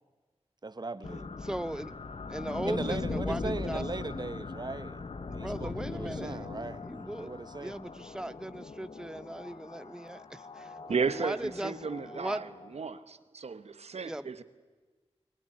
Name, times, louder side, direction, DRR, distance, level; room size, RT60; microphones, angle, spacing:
voice 1, 0.6-1.3 2.6-5.0 5.3-6.9 7.2-7.8, right 3 dB, 40° right, 1.0 m, -38 dB
sound 1, 1.0-13.0, left 3 dB, 60° left, 1.0 m, -40 dB
voice 2, 1.4-1.9 2.3-3.8 5.3-6.5 6.8-7.3 7.6-11.7 12.0-12.4 14.0-14.3, right 1 dB, 5° right, 0.8 m, -38 dB
voice 3, 10.9-12.5 12.7-14.4, right 5 dB, 85° right, 1.1 m, -34 dB
22.0 x 20.0 x 9.9 m
wide cardioid pair, 60°, 11 cm